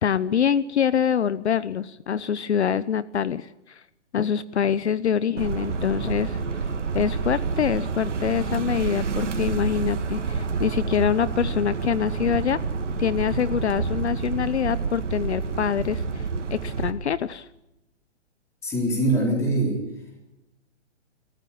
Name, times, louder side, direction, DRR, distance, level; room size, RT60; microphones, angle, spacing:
voice 1, 0.0-3.8 4.1-6.4 6.9-12.6 13.0-17.5, left 8 dB, 65° left, 16 dB, 1.0 m, -25 dB
sound 1, 5.4-16.9, right 5 dB, 80° right, 2.9 m, -28 dB
voice 2, 18.6-19.8, right 1 dB, 10° left, 0 dB, 3.9 m, -23 dB
28.0 x 14.5 x 8.8 m, 0.91 s
hypercardioid pair, 175°, 36 cm